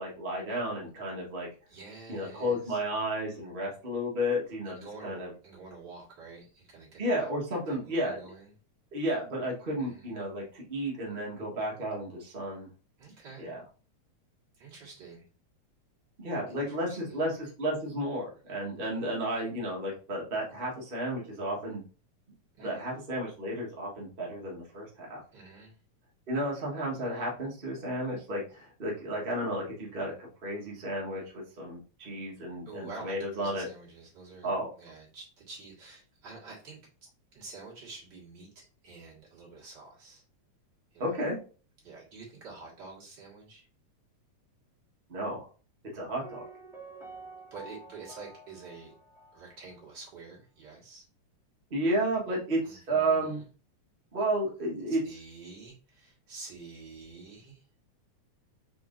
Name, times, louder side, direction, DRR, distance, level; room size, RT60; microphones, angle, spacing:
voice 1, 0.0-1.5 2.1-5.3 7.0-8.2 8.9-12.7 13.4-13.6 16.2-21.8 22.6-25.2 26.3-33.7 34.4-34.7 41.0-41.4 45.1-45.5 45.9-46.4 51.7-53.4 54.1-55.0, right 1 dB, 75° right, -4 dB, 0.5 m, -32 dB
voice 2, 1.7-2.8 4.7-7.3 7.7-8.5 9.8-10.1 13.0-13.5 14.6-15.2 16.5-17.3 22.5-22.9 25.3-25.7 32.7-36.8 37.3-40.2 40.9-41.2 41.8-43.7 47.5-48.9 49.3-51.0 52.6-53.5 54.9-57.6, right 4 dB, 40° right, -5 dB, 2.0 m, -48 dB
Piano, 46.2-50.0 50.2-50.3, right 2 dB, ahead, 1.0 m, -49 dB
4.6 x 4.3 x 2.5 m, 0.37 s
omnidirectional pair, 3.4 m